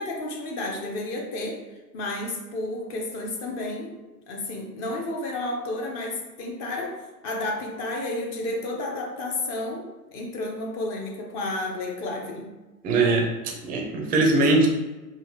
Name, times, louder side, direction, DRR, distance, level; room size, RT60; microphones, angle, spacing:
voice 1, 0.0-1.6 1.9-3.9 4.3-7.0 7.2-9.8 10.1-12.5, left 2 dB, 35° left, 0 dB, 1.0 m, -31 dB
voice 2, 12.8-14.7, right 2 dB, 20° right, 1 dB, 0.6 m, -21 dB
5.4 x 2.4 x 3.1 m, 1.1 s
hypercardioid pair, 120°, 48 cm